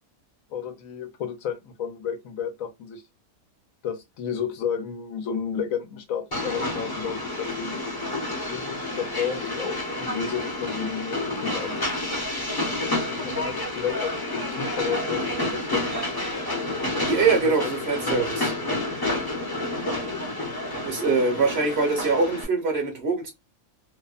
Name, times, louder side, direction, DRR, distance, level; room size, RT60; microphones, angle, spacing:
voice 1, 0.5-3.0 3.8-7.8 8.5-11.8 13.2-15.9 17.4-17.7 18.0-18.2, left 7 dB, 70° left, 1.0 m, -32 dB
Train, 6.3-22.4, left 2 dB, 20° left, 0.6 m, -29 dB
voice 2, 13.1-13.5 17.0-18.5 20.8-23.3, right 4 dB, 50° right, 0.9 m, -24 dB
2.7 x 2.1 x 2.3 m
omnidirectional pair, 1.5 m